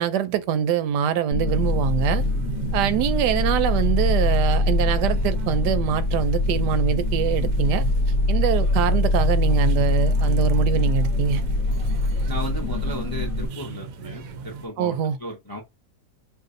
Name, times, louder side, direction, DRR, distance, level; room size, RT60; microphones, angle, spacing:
voice 1, 0.0-2.2 2.7-7.8 8.3-11.4 14.8-15.2, right 8 dB, 85° right, 1.2 m, -24 dB
sound 1, 1.3-13.5, left 2 dB, 70° left, 1.1 m, -23 dB
sound 2, 1.5-14.7, right 5 dB, 65° right, 0.9 m, -36 dB
voice 2, 12.3-15.6, equal, 25° left, 0.4 m, -35 dB
2.6 x 2.6 x 3.7 m
omnidirectional pair, 1.8 m